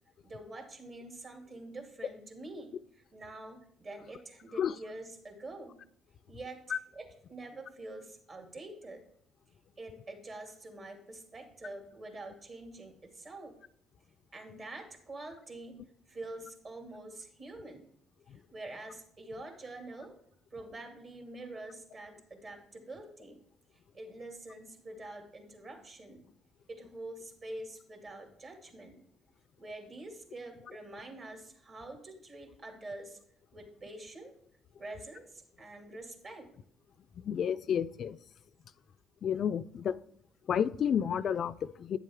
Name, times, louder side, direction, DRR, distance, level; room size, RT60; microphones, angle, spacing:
voice 1, 0.2-5.8 6.3-9.0 9.8-13.5 14.3-15.8 16.1-17.8 18.3-20.1 20.5-23.4 23.9-26.2 26.7-29.0 29.6-33.2 33.5-34.3 34.8-36.5, right 2 dB, 45° right, 4 dB, 2.3 m, -46 dB
voice 2, 37.2-38.2 39.2-40.0 40.5-42.0, left 8 dB, 55° left, 14 dB, 0.3 m, -30 dB
9.7 x 7.4 x 3.5 m, 0.68 s
supercardioid pair, 70°, 0 cm